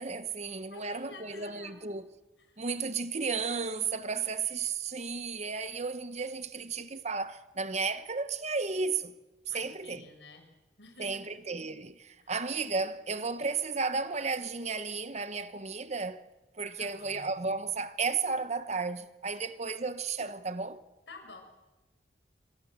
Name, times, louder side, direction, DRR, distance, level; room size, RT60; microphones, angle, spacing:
voice 1, 0.0-2.1 2.6-9.1 9.5-10.1 11.0-16.2 16.5-20.8, right 4 dB, 40° right, 1.2 m, -33 dB
voice 2, 0.7-1.8 2.4-2.6 9.5-10.4 10.8-11.3 12.2-12.3 16.8-17.5 21.1-21.4, left 3 dB, 80° left, 6.6 m, -50 dB
27.0 x 27.0 x 7.5 m
head